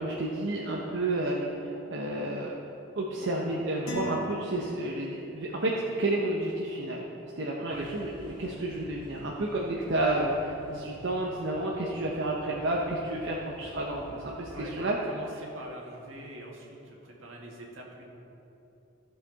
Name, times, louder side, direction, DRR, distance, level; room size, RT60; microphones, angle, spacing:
voice 1, 0.0-2.5 2.9-5.7 6.0-7.1 7.3-15.0, right 1 dB, 65° right, -2 dB, 0.8 m, -31 dB
sound 1, 3.9-5.4, left 1 dB, 85° left, 2.2 m, -40 dB
sound 2, 7.7-14.6, equal, 25° left, 2.0 m, -50 dB
voice 2, 14.5-18.1, right 1 dB, 85° right, -1 dB, 1.7 m, -44 dB
14.5 x 5.8 x 4.0 m, 2.9 s
head